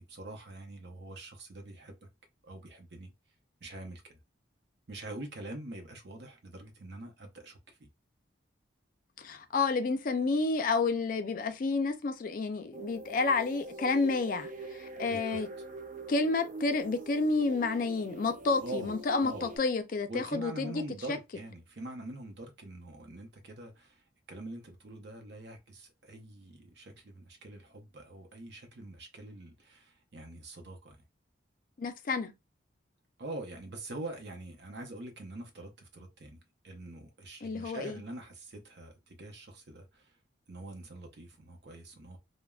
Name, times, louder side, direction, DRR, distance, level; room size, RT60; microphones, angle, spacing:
voice 1, 0.0-2.1 2.4-3.1 3.6-4.2 4.9-7.9 14.9-15.2 18.6-18.9 19.2-19.5 20.1-24.0 24.3-31.0 33.2-40.2 40.5-42.2, right 2 dB, 60° right, 0.7 m, -44 dB
voice 2, 9.2-15.5 16.1-20.8 21.1-21.2 31.8-32.3 37.4-38.0, left 3 dB, 45° left, 0.4 m, -30 dB
sound 1, 12.7-19.6, right 3 dB, 40° right, 0.3 m, -44 dB
3.3 x 2.1 x 2.3 m
head